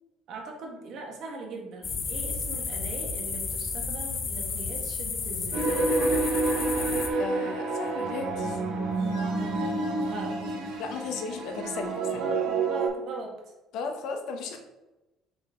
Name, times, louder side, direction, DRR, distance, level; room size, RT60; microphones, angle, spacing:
voice 1, 0.3-5.9 10.0-10.4 12.1-13.3, right 3 dB, 45° right, 0 dB, 1.6 m, -39 dB
sound 1, 1.8-7.1, left 4 dB, 30° left, 0.8 m, -32 dB
sound 2, 5.5-12.9, right 3 dB, 80° right, 1.8 m, -28 dB
voice 2, 7.2-8.6 10.8-12.3 13.7-14.6, left 4 dB, 60° left, 4 dB, 0.9 m, -35 dB
6.0 x 5.3 x 3.6 m, 1.0 s
cardioid pair, 165°, 0 cm